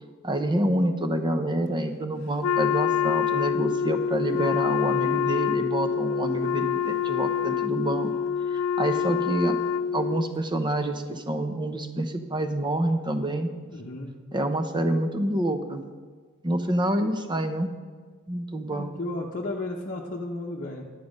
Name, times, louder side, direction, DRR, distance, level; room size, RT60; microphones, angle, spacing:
voice 1, 0.2-8.1 8.5-9.5 9.9-13.5 14.3-15.8 16.4-17.7 18.3-18.9, right 1 dB, 20° right, 8 dB, 0.8 m, -27 dB
Wind instrument woodwind instrument, 2.4-10.3, left 8 dB, 65° left, 0.4 m, -26 dB
voice 2, 5.1-5.6 13.7-14.1 18.7-20.9, left 2 dB, 40° left, -3 dB, 0.9 m, -34 dB
11.0 x 9.3 x 5.2 m, 1.5 s
head